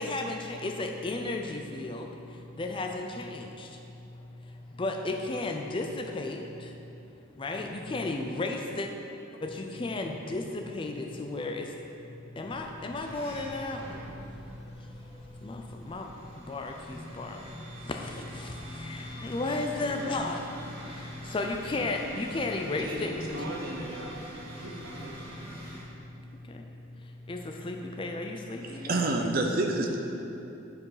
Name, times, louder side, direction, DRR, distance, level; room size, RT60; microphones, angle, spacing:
voice 1, 0.0-8.9 9.4-23.6 25.3-29.0, left 2 dB, 25° left, 3 dB, 0.4 m, -35 dB
sound 1, 12.4-25.8, equal, 25° right, 1.4 m, -44 dB
voice 2, 22.7-25.2, right 1 dB, 70° right, -1 dB, 1.1 m, -39 dB
voice 3, 28.8-30.0, right 2 dB, 45° right, 2 dB, 0.6 m, -27 dB
8.3 x 4.8 x 4.9 m, 2.9 s
head